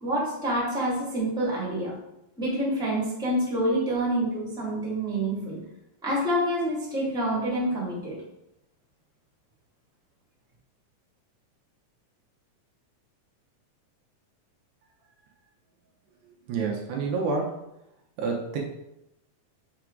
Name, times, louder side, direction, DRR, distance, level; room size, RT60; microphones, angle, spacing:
voice 1, 0.0-1.9 2.4-5.6 6.0-8.2, right 1 dB, ahead, -5 dB, 1.6 m, -27 dB
voice 2, 16.5-17.6 18.2-18.6, right 4 dB, 75° right, 1 dB, 2.3 m, -28 dB
6.0 x 3.7 x 4.6 m, 0.88 s
omnidirectional pair, 3.5 m